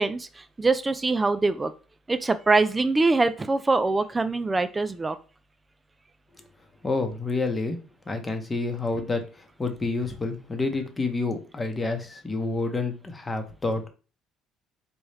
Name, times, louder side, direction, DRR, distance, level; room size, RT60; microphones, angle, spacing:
voice 1, 0.0-1.7 2.1-5.2, right 3 dB, 20° right, 12 dB, 0.3 m, -23 dB
voice 2, 6.8-7.8 8.1-13.9, left 3 dB, 25° left, 6 dB, 0.8 m, -29 dB
4.1 x 2.3 x 3.3 m, 0.34 s
supercardioid pair, 80°, 0 cm